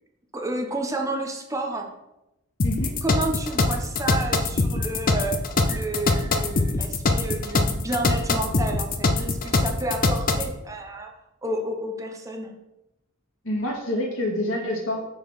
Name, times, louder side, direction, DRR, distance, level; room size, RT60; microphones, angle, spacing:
voice 1, 0.3-1.9 3.0-11.1 11.4-12.5, right 2 dB, 15° right, 2 dB, 1.0 m, -31 dB
sound 1, 2.6-10.5, left 3 dB, 40° left, 0.7 m, -23 dB
voice 2, 13.4-15.0, left 1 dB, 70° left, -1 dB, 2.1 m, -27 dB
6.7 x 4.1 x 6.4 m, 0.92 s
head